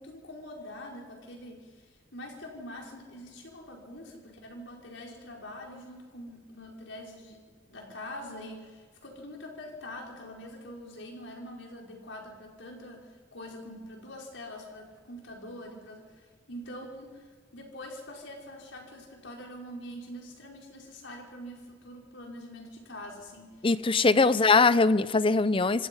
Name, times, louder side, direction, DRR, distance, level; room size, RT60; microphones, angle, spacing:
voice 1, 0.0-1.8 2.1-23.7 24.1-24.5, left 1 dB, 80° left, -1 dB, 5.5 m, -44 dB
voice 2, 23.6-25.9, left 3 dB, 30° left, 15 dB, 0.6 m, -22 dB
26.5 x 26.0 x 5.7 m, 1.6 s
head